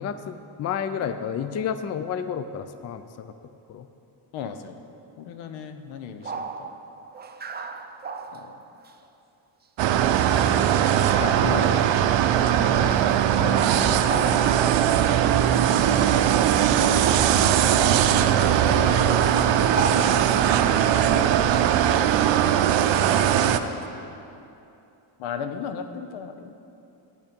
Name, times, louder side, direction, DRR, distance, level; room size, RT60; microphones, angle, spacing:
voice 1, 0.0-3.3 3.7-3.9 21.1-21.5 21.8-21.9, left 7 dB, 35° left, 10 dB, 0.4 m, -31 dB
voice 2, 4.3-4.7 5.2-6.7 8.3-8.6 11.2-11.8 12.6-12.9 13.4-14.5 15.8-16.1 16.4-17.0 17.3-21.4 23.2-23.8 25.2-26.5, left 7 dB, 80° left, 8 dB, 0.8 m, -36 dB
sound 1, 5.9-6.0 6.2-8.9 9.8-9.9 10.2-10.7 11.6-11.8 12.4-12.5 12.8-13.2 13.5-14.9 15.9-16.0 16.4-20.6 21.0-21.3 21.5-21.7 22.7-23.6, right 4 dB, 20° right, 0.4 m, -36 dB
sound 2, 9.8-23.6, right 10 dB, 65° right, 0.6 m, -20 dB
8.4 x 7.9 x 5.2 m, 2.8 s
cardioid pair, 90°, 48 cm